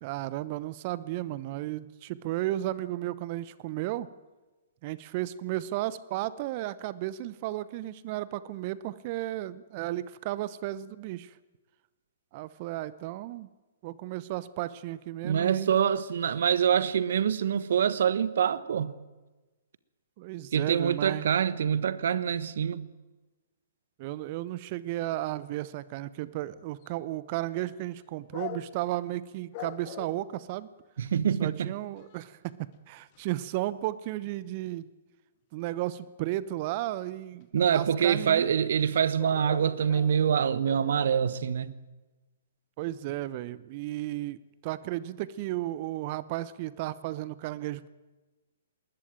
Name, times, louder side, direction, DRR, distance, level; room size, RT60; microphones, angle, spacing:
voice 1, 0.0-4.1 4.8-11.3 12.3-13.5 13.8-15.7 20.2-21.3 24.0-30.7 31.4-34.9 35.5-38.5 42.8-47.9, right 15 dB, 40° right, 0.9 m, -34 dB
voice 2, 15.2-18.9 20.5-22.9 31.0-31.7 37.5-41.7, right 8 dB, 60° right, 1.3 m, -25 dB
sound 1, 26.8-26.9 28.3-28.9 29.5-30.2 31.1-31.2 31.6-31.7 32.0-32.5 33.1-33.4 37.0-37.1 37.4-37.5 38.9-39.0 39.2-41.2, left 12 dB, 40° left, 2.0 m, -42 dB
20.0 x 19.5 x 9.0 m
figure-of-eight pair, 120°, 0 cm